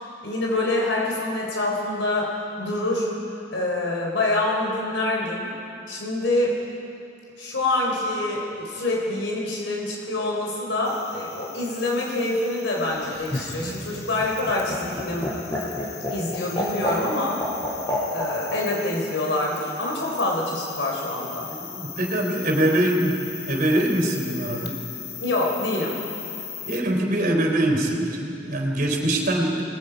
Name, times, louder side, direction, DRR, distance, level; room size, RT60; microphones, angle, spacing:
voice 1, 0.2-3.1 3.5-5.5 5.9-6.6 7.4-15.3 16.1-17.4 18.1-21.5 25.2-26.0, left 2 dB, 85° left, -2 dB, 3.9 m, -26 dB
sound 1, 10.8-26.8, left 9 dB, 60° left, 2.0 m, -39 dB
Laughter, 12.9-18.6 19.9-20.5, equal, 20° left, 5.1 m, -29 dB
voice 2, 21.5-24.8 26.6-29.6, right 1 dB, 50° right, 1 dB, 3.8 m, -23 dB
28.0 x 20.0 x 5.2 m, 2.7 s
head